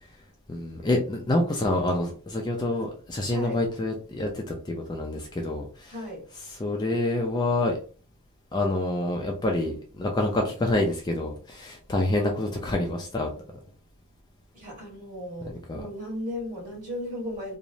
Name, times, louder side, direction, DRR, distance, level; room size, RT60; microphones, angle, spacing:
voice 1, 0.5-5.9 6.6-7.8 8.5-13.3 15.7-15.8, left 1 dB, 20° left, 1 dB, 0.3 m, -27 dB
voice 2, 3.3-3.6 5.9-6.2 14.5-17.6, left 1 dB, 35° right, -4 dB, 1.4 m, -36 dB
2.9 x 2.0 x 2.6 m, 0.39 s
head